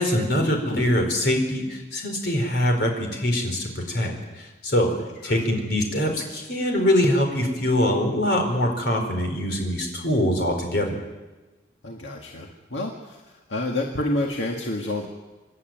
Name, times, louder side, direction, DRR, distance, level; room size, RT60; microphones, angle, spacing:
voice 1, 0.0-4.9 5.2-11.0, left 1 dB, 60° left, 3 dB, 4.5 m, -23 dB
voice 2, 4.9-5.4 11.8-13.2 13.5-15.1, left 1 dB, 80° left, 0 dB, 2.0 m, -29 dB
26.5 x 11.5 x 9.3 m, 1.2 s
head